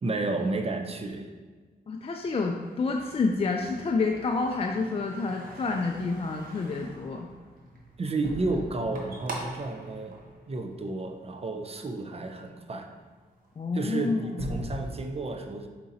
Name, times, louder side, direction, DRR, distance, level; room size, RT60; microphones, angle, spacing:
voice 1, 0.0-1.3 8.0-10.2 10.5-12.9 13.7-15.7, right 2 dB, 35° right, 4 dB, 0.5 m, -32 dB
voice 2, 1.9-7.3 13.6-14.5, left 3 dB, 30° left, 2 dB, 0.3 m, -29 dB
sound 1, 2.2-11.2 11.6-12.1 12.6-12.8 13.1-14.8, right 1 dB, 50° right, 0.9 m, -42 dB
4.8 x 2.9 x 2.6 m, 1.4 s
supercardioid pair, 40°, 19 cm